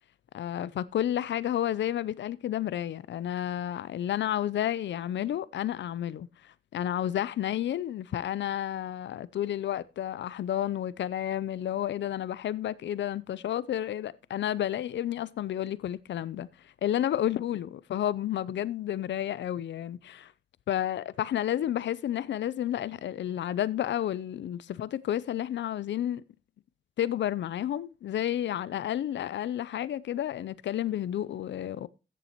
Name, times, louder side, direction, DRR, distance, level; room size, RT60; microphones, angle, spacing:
voice 1, 0.3-20.3 20.7-26.2 27.0-31.9, left 11 dB, 75° left, 0.6 m, -31 dB
14.5 x 6.9 x 3.0 m
cardioid pair, 75°, 19 cm